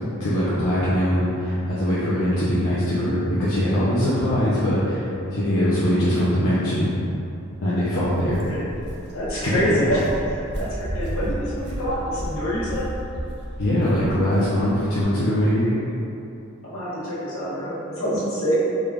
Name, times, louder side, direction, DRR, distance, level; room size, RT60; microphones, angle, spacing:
voice 1, 0.2-6.9 7.6-8.4 9.4-9.8 13.6-15.7, equal, 90° left, -10 dB, 0.6 m, -22 dB
Walk footsteps, 8.0-15.0, equal, 50° right, 0.5 m, -33 dB
voice 2, 9.1-12.9 15.6-15.8 16.6-18.6, equal, 70° left, -9 dB, 1.2 m, -26 dB
3.6 x 2.3 x 3.4 m, 2.7 s
head